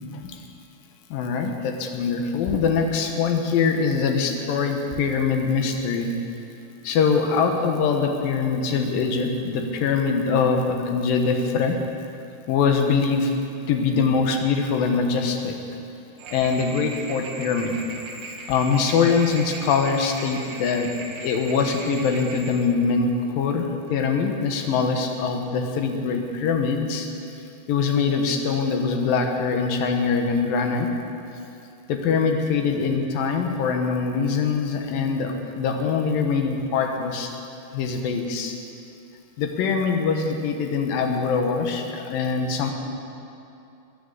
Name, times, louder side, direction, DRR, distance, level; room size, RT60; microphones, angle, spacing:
voice 1, 1.1-6.2 6.8-11.8 12.5-13.4 13.7-15.6 16.3-17.8 18.5-20.9 21.2-27.1 27.7-30.9 31.9-37.3 37.7-38.6 39.4-42.7, left 5 dB, 65° left, 3 dB, 2.7 m, -23 dB
sound 1, 16.2-22.5, right 2 dB, 65° right, 1.9 m, -38 dB
15.5 x 10.5 x 8.2 m, 2.7 s
omnidirectional pair, 4.8 m